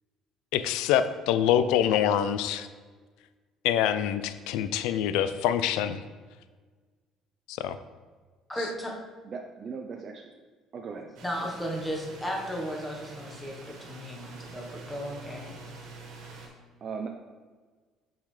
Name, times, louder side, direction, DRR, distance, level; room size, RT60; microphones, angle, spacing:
voice 1, 0.5-2.7 3.6-6.0 7.5-7.8, left 10 dB, 90° left, 12 dB, 0.4 m, -25 dB
voice 2, 8.5-9.0 11.2-15.6, equal, 5° left, -1 dB, 1.2 m, -35 dB
voice 3, 9.2-10.3 10.7-11.1 11.4-11.5 16.8-17.1, right 5 dB, 40° right, 2 dB, 0.5 m, -38 dB
sound 1, 11.1-16.5, right 3 dB, 80° right, 1.7 m, -46 dB
7.0 x 5.5 x 3.3 m, 1.4 s
cardioid pair, 120°, 0 cm